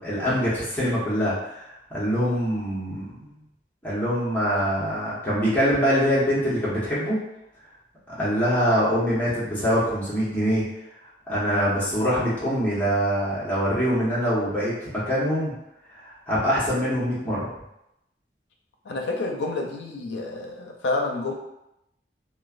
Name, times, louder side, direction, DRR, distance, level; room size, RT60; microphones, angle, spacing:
voice 1, 0.0-3.4 3.8-7.2 8.2-10.6 11.3-15.5 16.0-17.5, equal, 10° left, -10 dB, 0.9 m, -24 dB
voice 2, 18.8-21.3, left 3 dB, 85° left, 1 dB, 0.5 m, -29 dB
3.0 x 2.2 x 2.4 m, 0.85 s
head